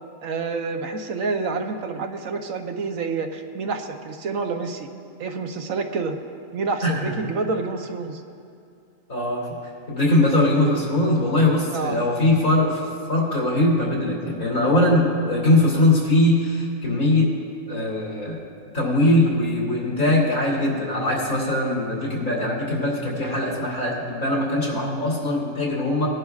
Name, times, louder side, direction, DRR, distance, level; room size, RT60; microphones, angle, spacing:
voice 1, 0.2-4.9 5.2-6.2 6.5-8.2 11.7-12.0, right 4 dB, 75° right, 5 dB, 1.2 m, -28 dB
voice 2, 6.8-7.1 9.1-9.6 9.9-12.8 13.1-17.3 17.7-18.4 18.7-26.1, left 1 dB, 90° left, -5 dB, 3.4 m, -21 dB
20.5 x 10.5 x 2.4 m, 2.5 s
omnidirectional pair, 1.4 m